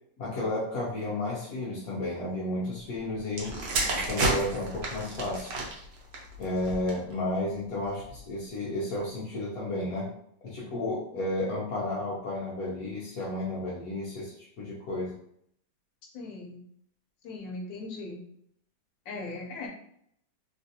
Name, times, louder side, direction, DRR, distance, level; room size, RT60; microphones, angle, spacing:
voice 1, 0.2-3.5 3.9-5.5 6.4-10.1 10.4-15.1, left 1 dB, 60° left, -7 dB, 1.0 m, -32 dB
sound 1, 3.3-7.1 7.9-8.2, right 2 dB, 75° right, 1.4 m, -31 dB
voice 2, 16.1-16.6 17.2-18.2 19.1-19.7, left 3 dB, 80° left, 0 dB, 1.3 m, -38 dB
3.3 x 2.4 x 2.7 m, 0.70 s
omnidirectional pair, 1.9 m